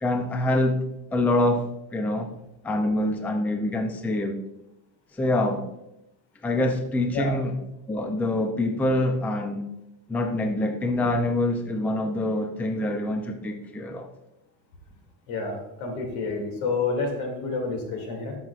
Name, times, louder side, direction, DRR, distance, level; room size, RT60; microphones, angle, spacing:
voice 1, 0.0-0.8 1.1-2.3 2.6-4.4 5.1-5.7 6.4-7.5 7.9-9.7 10.1-14.1, left 1 dB, 5° left, 5 dB, 0.4 m, -25 dB
voice 2, 15.3-18.4, left 3 dB, 85° left, 2 dB, 2.5 m, -29 dB
13.0 x 6.1 x 2.4 m, 0.86 s
cardioid pair, 150°, 39 cm